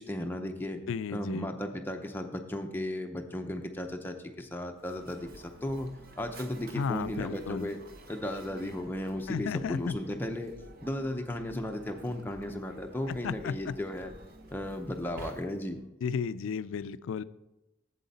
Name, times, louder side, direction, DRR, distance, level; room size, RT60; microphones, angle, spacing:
voice 1, 0.0-0.8 1.1-5.9 6.2-7.8 8.1-10.5 10.8-14.1 14.5-15.8, left 1 dB, 10° left, 4 dB, 0.6 m, -35 dB
voice 2, 0.9-1.5 6.7-7.7 9.3-9.9 13.1-13.8 16.0-17.2, left 6 dB, 75° left, 16 dB, 0.3 m, -33 dB
Mechanisms, 4.7-15.9, right 1 dB, 45° right, 0.8 m, -51 dB
7.7 x 7.6 x 4.1 m, 0.94 s
head